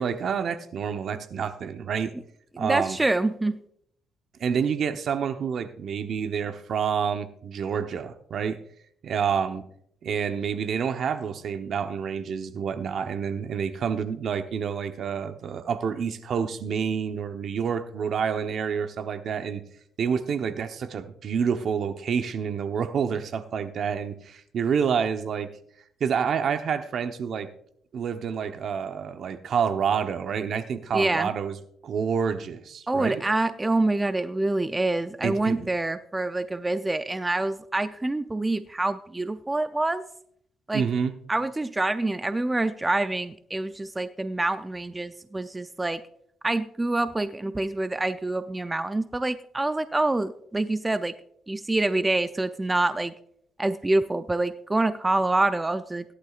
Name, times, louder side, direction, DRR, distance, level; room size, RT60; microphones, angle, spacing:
voice 1, 0.0-2.1 2.6-3.0 4.4-8.6 9.0-9.6 10.0-19.6 20.0-25.5 26.0-27.5 27.9-31.6 31.8-33.2 35.2-35.7 40.7-41.1, right 7 dB, 60° right, 9 dB, 1.0 m, -28 dB
voice 2, 2.6-3.6 30.9-31.3 32.9-40.1 40.7-40.9 41.3-46.0 46.4-51.1 51.5-53.1 53.6-56.0, right 2 dB, 15° right, 11 dB, 0.5 m, -26 dB
17.0 x 11.5 x 2.5 m, 0.68 s
cardioid pair, 90°, 0 cm